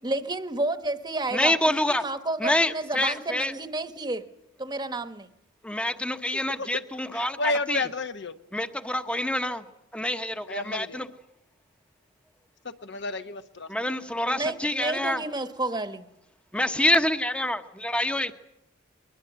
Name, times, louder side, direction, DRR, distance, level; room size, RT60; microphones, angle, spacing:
voice 1, 0.0-4.2 4.6-5.3 14.3-16.1, right 2 dB, 20° right, 1.1 m, -31 dB
voice 2, 1.3-2.0 2.4-3.5 5.6-7.8 8.5-9.6 9.9-11.0 13.7-15.2 16.5-18.3, left 1 dB, 5° left, 0.9 m, -26 dB
voice 3, 7.1-8.3 10.5-11.1 12.6-13.7, left 2 dB, 60° left, 1.1 m, -31 dB
22.0 x 21.0 x 8.1 m
head